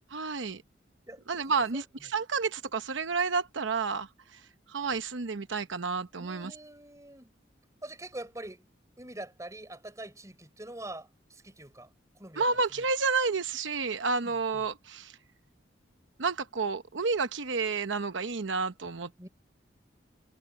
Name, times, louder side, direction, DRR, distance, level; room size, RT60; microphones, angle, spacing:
voice 1, 0.1-0.6 1.3-4.4 4.7-6.5 12.4-15.1 16.2-19.3, right 4 dB, 90° right, 0.9 m, -30 dB
voice 2, 1.1-1.8 6.2-7.3 7.8-8.6 9.0-11.9 12.2-12.4 12.8-12.9 14.2-14.6 19.2-19.3, right 1 dB, 15° right, 4.5 m, -44 dB
head